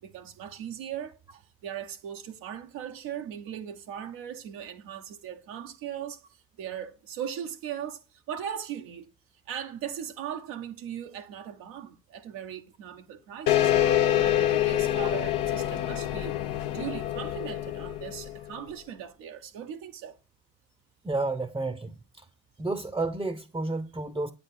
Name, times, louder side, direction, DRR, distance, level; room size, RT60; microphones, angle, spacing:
voice 1, 0.0-6.2 6.6-9.1 9.5-13.7 14.2-16.4 16.7-20.2, right 9 dB, 85° right, 0.6 m, -39 dB
sound 1, 13.5-18.5, left 12 dB, 75° left, 0.6 m, -26 dB
voice 2, 21.0-21.9 22.6-24.3, right 3 dB, 10° right, 0.6 m, -30 dB
8.6 x 3.4 x 4.1 m
hypercardioid pair, 40°, 34 cm